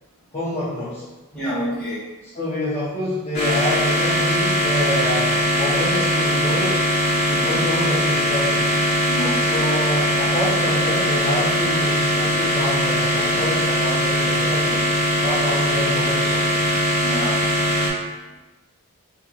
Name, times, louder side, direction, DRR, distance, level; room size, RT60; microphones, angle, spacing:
voice 1, 0.3-1.0 2.2-6.8 7.3-8.7 9.4-16.6, left 1 dB, 30° left, -11 dB, 0.7 m, -27 dB
voice 2, 1.3-2.0 7.2-7.6 9.1-9.6 17.0-17.3, equal, 5° left, -11 dB, 1.4 m, -28 dB
sound 1, 3.3-17.9, equal, 50° left, 1.3 m, -20 dB
4.3 x 2.9 x 2.4 m, 1.2 s
head